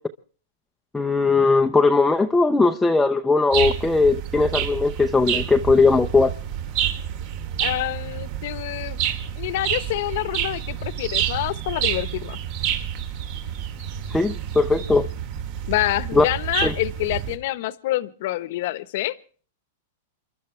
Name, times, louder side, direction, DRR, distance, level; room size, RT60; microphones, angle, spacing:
voice 1, 0.9-6.3 14.1-15.1 16.1-16.2 16.6-16.7, left 3 dB, 5° left, 4 dB, 0.8 m, -19 dB
sound 1, 3.5-17.4, right 9 dB, 45° right, 2.9 m, -29 dB
voice 2, 7.6-9.0 9.4-12.4 15.7-19.2, left 16 dB, 55° left, 15 dB, 1.1 m, -27 dB
28.5 x 12.5 x 3.3 m, 0.42 s
supercardioid pair, 150°, 0 cm